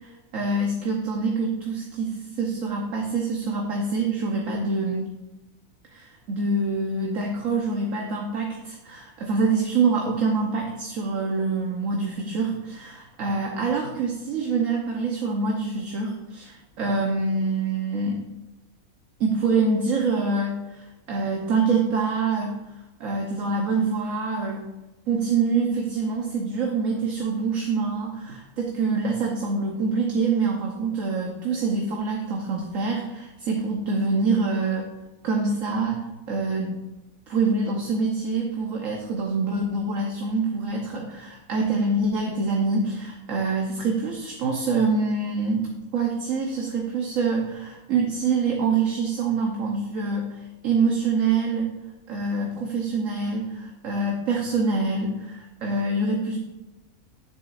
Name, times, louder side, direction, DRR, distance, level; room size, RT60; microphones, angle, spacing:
voice 1, 0.0-5.1 5.9-18.2 19.2-22.6 23.0-24.7 25.1-34.9 35.2-36.8 37.3-51.7 52.1-56.4, right 4 dB, 65° right, 0 dB, 1.3 m, -25 dB
10.0 x 8.1 x 2.5 m, 1.0 s
omnidirectional pair, 1.5 m